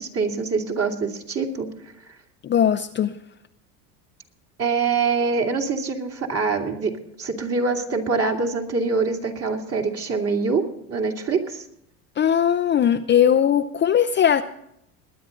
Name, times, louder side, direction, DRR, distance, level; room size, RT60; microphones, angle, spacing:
voice 1, 0.0-1.7 4.6-6.9 7.2-11.6, right 4 dB, 30° right, 3 dB, 2.4 m, -24 dB
voice 2, 2.4-3.2 12.2-14.4, left 9 dB, 25° left, 8 dB, 0.6 m, -19 dB
21.0 x 10.0 x 3.8 m, 0.74 s
hypercardioid pair, 90°, 44 cm